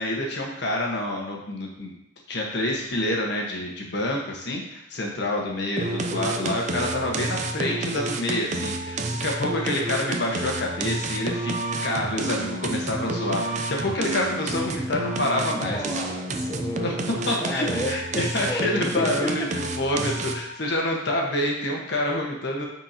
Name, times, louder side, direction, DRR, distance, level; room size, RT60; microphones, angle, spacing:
voice 1, 0.0-2.0 2.3-11.5 11.8-15.8 16.8-16.9 17.3-22.6, left 1 dB, 60° left, -1 dB, 1.3 m, -27 dB
sound 1, 5.8-20.6, right 2 dB, 35° right, 0.5 m, -30 dB
voice 2, 15.5-19.5, equal, 15° left, 2 dB, 0.7 m, -32 dB
8.7 x 4.5 x 2.9 m, 0.81 s
head